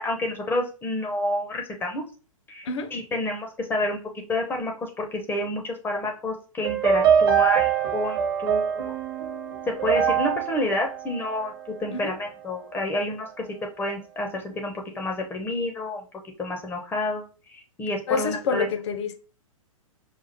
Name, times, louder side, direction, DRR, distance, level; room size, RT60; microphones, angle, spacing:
voice 1, 0.0-2.0 2.5-4.0 4.3-8.9 9.7-11.5 11.8-13.3 13.8-16.0 16.4-17.2 17.5-18.7, left 1 dB, 10° left, 0.5 m, -29 dB
voice 2, 2.7-3.0 11.9-12.1 18.1-19.1, left 5 dB, 55° left, 0.7 m, -27 dB
sound 1, 6.6-12.0, right 8 dB, 45° right, 0.8 m, -24 dB
5.1 x 2.4 x 2.8 m
figure-of-eight pair, 115°, 18 cm